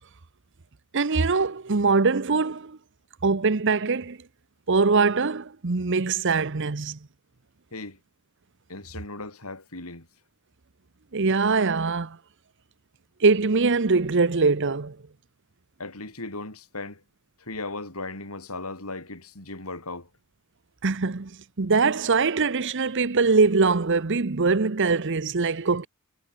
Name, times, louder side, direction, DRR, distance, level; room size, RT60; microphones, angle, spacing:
voice 1, 0.9-2.8 3.2-4.2 4.7-7.0 11.1-12.2 13.2-15.0 20.8-21.3 21.6-25.9, right 4 dB, 55° right, 0.9 m, -22 dB
voice 2, 8.7-10.1 15.8-17.0 17.4-20.1, left 2 dB, 90° left, 6.1 m, -37 dB
head